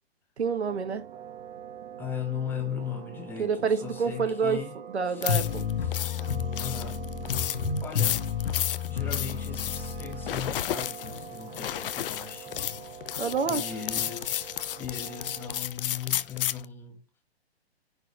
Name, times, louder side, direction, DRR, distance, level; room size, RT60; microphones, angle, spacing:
voice 1, 0.4-1.1 3.4-4.6 4.9-5.6 13.2-13.6, right 5 dB, 80° right, 1.6 m, -28 dB
sound 1, 0.7-15.6, right 9 dB, 45° right, 1.6 m, -45 dB
voice 2, 2.0-4.8 5.1-5.3 5.8-6.0 6.6-7.0 7.8-8.3 8.9-12.6 13.5-17.0, left 8 dB, 5° left, 0.4 m, -38 dB
sound 2, 5.2-16.7, left 11 dB, 55° left, 0.7 m, -33 dB
sound 3, 5.3-10.6, left 7 dB, 85° left, 2.0 m, -31 dB
10.5 x 4.7 x 3.1 m
hypercardioid pair, 135°, 32 cm